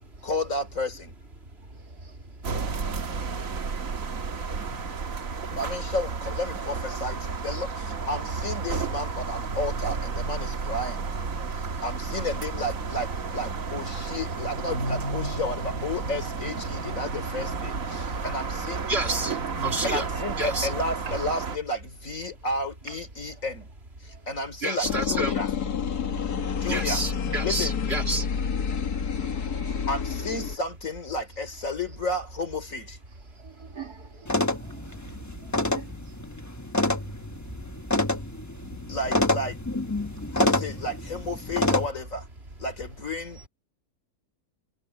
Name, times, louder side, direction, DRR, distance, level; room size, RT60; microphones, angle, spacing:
voice 1, 0.2-1.1 5.5-11.1 11.8-18.8 19.8-23.7 24.0-25.5 26.6-27.0 27.4-27.8 29.9-33.0 38.9-39.6 40.3-42.3 42.6-43.4, left 1 dB, 55° left, 3.7 m, -32 dB
voice 2, 1.7-2.8 4.7-4.8 17.9-18.2 18.9-20.1 20.4-20.7 24.6-25.4 26.7-28.3 38.6-38.7, right 2 dB, 40° right, 3.4 m, -30 dB
sound 1, 2.4-21.6, right 4 dB, 60° right, 1.9 m, -32 dB
sound 2, 24.8-30.6, left 7 dB, 80° left, 2.1 m, -29 dB
voice 3, 33.4-34.7 35.7-35.9, right 9 dB, 85° right, 3.2 m, -44 dB
sound 3, 34.3-41.9, left 2 dB, 10° left, 1.1 m, -28 dB
omnidirectional pair, 1.6 m